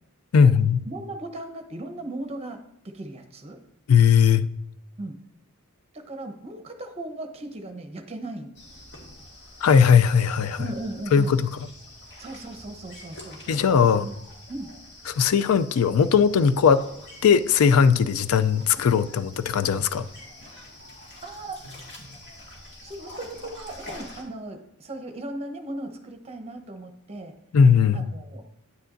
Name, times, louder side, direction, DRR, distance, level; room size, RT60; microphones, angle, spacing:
voice 1, 0.3-0.8 3.9-4.5 9.6-10.6 11.1-11.5 13.5-14.1 15.1-16.8 17.2-20.1 27.5-28.1, left 6 dB, 85° left, 0.4 m, -19 dB
voice 2, 0.8-3.6 5.0-5.2 5.9-8.5 10.6-11.3 12.2-13.6 14.0-14.1 14.5-14.7 21.2-21.7 22.8-27.4 27.9-28.4, right 2 dB, 30° right, 0.9 m, -37 dB
sound 1, 8.5-24.2, left 1 dB, 55° left, 2.0 m, -46 dB
9.4 x 9.1 x 2.6 m
head